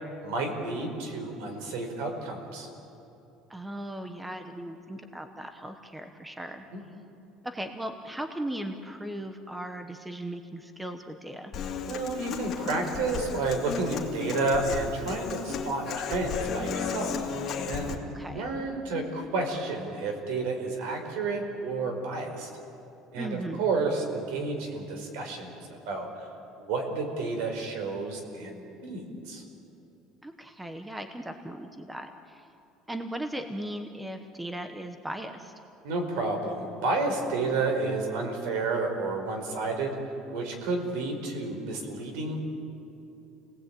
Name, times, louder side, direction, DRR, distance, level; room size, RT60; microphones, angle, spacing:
voice 1, 0.2-2.7 6.7-6.8 11.8-17.1 17.6-18.0 18.3-22.5 23.1-25.6 25.9-26.1 26.6-29.4 35.8-39.9 40.3-42.4, right 3 dB, 80° right, 4 dB, 4.9 m, -31 dB
voice 2, 3.5-6.6 7.4-11.6 18.1-18.5 23.1-23.6 30.2-32.5 32.9-35.5, right 1 dB, 5° right, 7 dB, 1.0 m, -37 dB
Human voice / Acoustic guitar, 11.5-17.9, left 6 dB, 30° left, 2.5 m, -34 dB
30.0 x 18.5 x 9.0 m, 2.8 s
cardioid pair, 175°, 0 cm